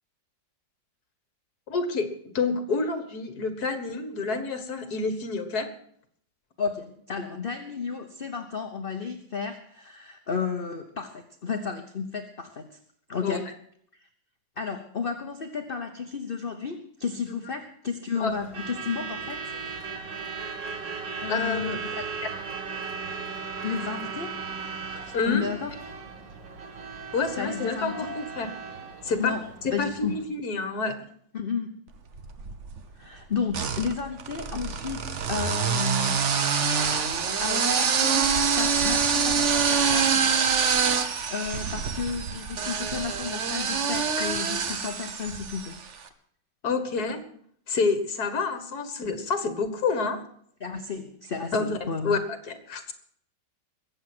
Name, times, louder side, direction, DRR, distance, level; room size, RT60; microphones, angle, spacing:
voice 1, 1.7-5.7 13.2-13.5 17.3-17.4 18.2-18.3 21.3-21.7 24.9-25.5 27.1-28.5 29.0-29.3 29.6-31.0 44.2-44.3 46.6-47.2 47.7-50.2 51.5-51.8 52.0-52.9, left 4 dB, 55° left, 9 dB, 2.1 m, -28 dB
voice 2, 6.6-12.8 13.1-13.4 14.6-20.0 21.2-22.1 23.6-24.4 25.3-25.7 27.4-28.1 29.2-29.4 29.7-30.2 31.3-31.8 32.9-36.4 37.4-40.6 41.3-45.8 50.6-52.2, left 6 dB, 40° left, 6 dB, 0.9 m, -33 dB
Truck / Alarm, 18.3-30.2, right 5 dB, 75° right, 2.3 m, -37 dB
sound 1, 32.1-32.8 33.5-45.8, right 6 dB, 45° right, 1.2 m, -25 dB
21.5 x 8.1 x 6.1 m, 0.65 s
omnidirectional pair, 2.0 m